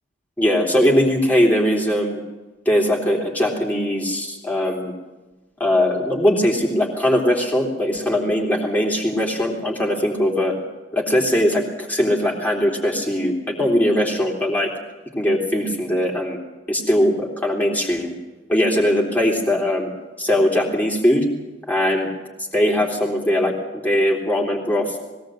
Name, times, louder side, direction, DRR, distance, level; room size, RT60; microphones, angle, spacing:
voice 1, 0.4-2.2 2.7-4.9 5.6-10.5 10.9-14.7 15.2-16.4 16.7-18.1 18.5-19.9 20.2-21.3 21.7-22.1 22.5-23.5 23.8-25.0, left 1 dB, 10° left, -1 dB, 3.5 m, -20 dB
21.0 x 17.0 x 7.8 m, 1.1 s
head